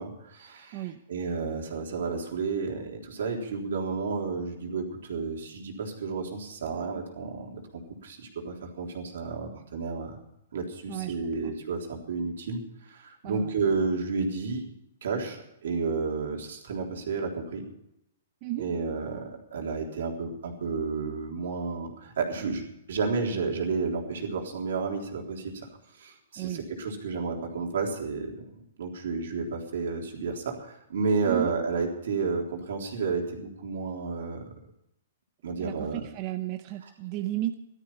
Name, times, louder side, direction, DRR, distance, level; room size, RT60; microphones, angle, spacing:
voice 1, 0.0-10.2 10.5-14.6 15.0-17.7 18.6-22.6 22.9-25.7 26.0-34.4 35.4-36.0 36.8-36.9, right 4 dB, 75° right, 1 dB, 3.7 m, -31 dB
voice 2, 35.6-37.5, right 15 dB, 35° right, 7 dB, 0.7 m, -33 dB
15.0 x 13.0 x 5.6 m, 0.82 s
hypercardioid pair, 160°, 0 cm